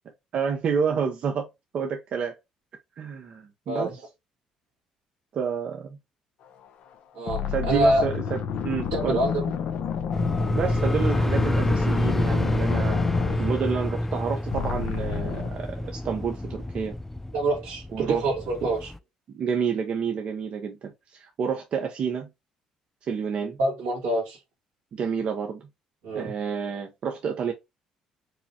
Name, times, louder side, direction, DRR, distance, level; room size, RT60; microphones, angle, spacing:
voice 1, 0.3-1.5 1.7-2.4 3.0-3.9 5.3-5.9 7.5-9.2 10.6-13.0 13.4-15.7 15.9-16.9 17.9-18.2 19.3-22.3 23.0-23.6 24.9-25.6 26.1-27.5, right 6 dB, 55° right, 0.7 m, -29 dB
sound 1, 6.6-6.9 7.3-14.2 14.5-15.6, left 8 dB, 70° left, 0.6 m, -30 dB
voice 2, 7.1-8.0 8.9-9.5 13.3-13.5 17.3-18.9 23.6-24.4 26.0-26.3, right 1 dB, 90° right, 2.0 m, -26 dB
sound 2, 10.1-19.0, left 1 dB, 10° left, 0.3 m, -27 dB
4.8 x 2.1 x 2.8 m
supercardioid pair, 70°, 2 cm